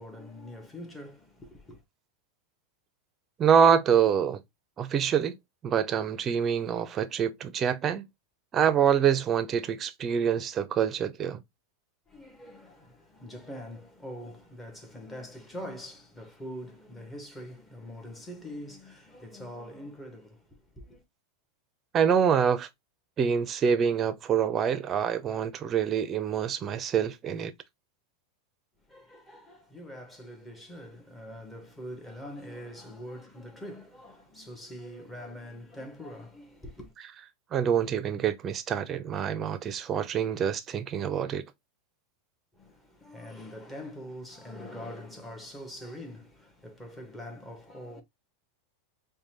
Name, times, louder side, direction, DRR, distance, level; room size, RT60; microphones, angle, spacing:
voice 1, 0.0-1.8 12.1-21.0 28.9-36.9 42.5-48.0, equal, 10° left, 1.3 m, -44 dB
voice 2, 3.4-4.4 4.8-5.3 5.6-8.0 8.5-11.4 21.9-22.7 23.2-27.5 37.5-41.4, right 8 dB, 30° right, 0.6 m, -26 dB
5.1 x 2.3 x 3.0 m
supercardioid pair, 125°, 0 cm